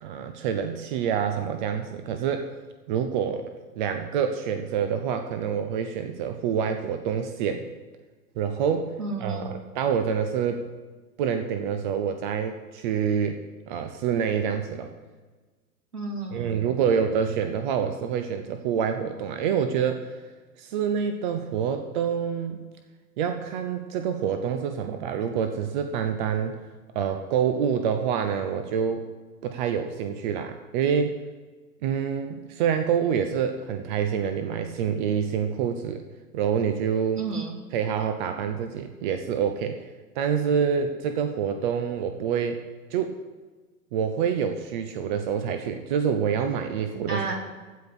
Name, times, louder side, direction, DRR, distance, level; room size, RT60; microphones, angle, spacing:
voice 1, 0.0-2.5 2.9-3.5 3.8-7.7 8.4-8.9 9.2-10.7 11.2-13.4 13.7-14.9 16.3-20.1 20.6-22.7 23.2-26.5 26.9-29.0 29.4-31.2 31.8-36.0 36.3-37.2 37.7-39.8 40.1-42.6 42.9-43.1 43.9-47.3, right 7 dB, 30° right, 8 dB, 0.8 m, -27 dB
voice 2, 9.0-9.5 15.9-16.6 37.2-37.5 47.1-47.4, right 3 dB, 65° right, 1 dB, 3.2 m, -31 dB
15.5 x 5.2 x 9.8 m, 1.3 s
figure-of-eight pair, 105°, 48 cm